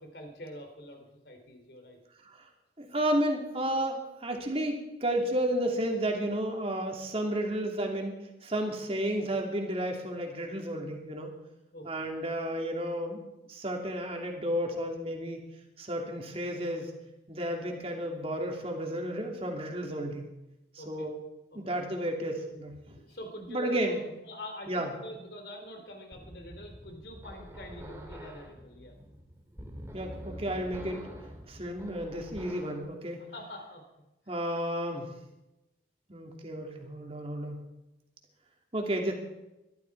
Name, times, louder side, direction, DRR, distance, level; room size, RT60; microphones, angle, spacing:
voice 1, 0.0-2.0 2.9-3.1 11.7-11.9 20.8-21.1 21.5-21.6 23.0-28.9 33.2-34.4, left 1 dB, 60° left, 4 dB, 3.3 m, -45 dB
voice 2, 2.8-8.2 8.4-11.3 11.8-13.2 13.5-15.4 15.8-16.9 17.3-20.2 20.8-21.1 21.5-23.0 23.5-24.0 24.7-24.9 29.9-31.0 31.5-33.2 34.3-35.1 36.1-37.6 38.7-39.1, right 1 dB, 30° right, 2 dB, 2.9 m, -32 dB
sound 1, 26.1-32.9, equal, 15° right, 2.2 m, -46 dB
21.5 x 13.0 x 4.8 m, 0.96 s
head